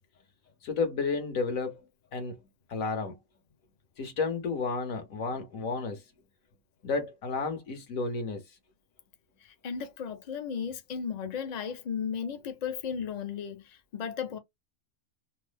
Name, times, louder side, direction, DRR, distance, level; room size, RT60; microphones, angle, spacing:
voice 1, 0.6-2.4 2.7-3.2 4.0-6.0 6.8-8.4, left 4 dB, 70° left, 1.4 m, -32 dB
voice 2, 9.4-14.4, left 7 dB, 55° left, 0.5 m, -35 dB
3.2 x 2.0 x 3.2 m
omnidirectional pair, 1.5 m